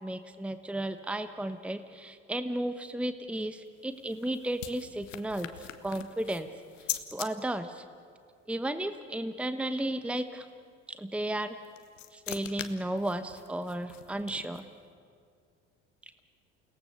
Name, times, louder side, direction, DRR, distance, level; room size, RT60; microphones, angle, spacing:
voice 1, 0.0-6.5 7.1-7.8 8.5-10.5 10.9-11.5 12.1-14.6, right 1 dB, 5° right, 10 dB, 1.1 m, -34 dB
sound 1, 3.7-7.3 11.4-14.8, left 11 dB, 85° left, 1.2 m, -42 dB
29.0 x 18.0 x 6.7 m, 2.3 s
hypercardioid pair, 60°, 37 cm